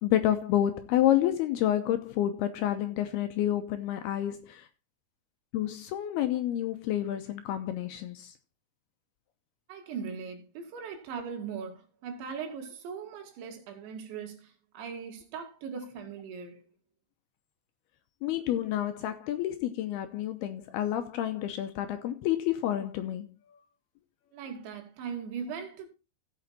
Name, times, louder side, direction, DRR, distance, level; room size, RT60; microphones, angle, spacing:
voice 1, 0.0-4.7 5.5-8.3 18.2-23.6, left 12 dB, 80° left, 2.4 m, -29 dB
voice 2, 9.7-16.6 24.3-25.9, right 6 dB, 80° right, 4.3 m, -39 dB
15.5 x 6.0 x 4.2 m
omnidirectional pair, 5.1 m